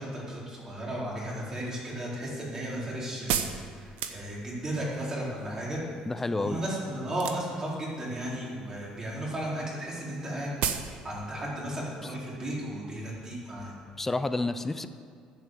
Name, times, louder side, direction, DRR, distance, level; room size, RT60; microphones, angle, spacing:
voice 1, 0.0-3.5 3.8-5.8 6.4-10.5 11.0-13.7, right 1 dB, 30° right, -5 dB, 4.2 m, -34 dB
sound 1, 1.7-4.7 7.1-7.7 8.0-8.6 8.9-9.1 9.4-9.5 9.7-9.8 10.1-10.2 10.6-11.0 11.2-11.3, right 9 dB, 80° right, 0.9 m, -32 dB
voice 2, 6.1-6.6 14.0-14.9, left 2 dB, 15° left, 11 dB, 0.6 m, -29 dB
10.5 x 9.2 x 7.7 m, 2.2 s
cardioid pair, 130°, 2 cm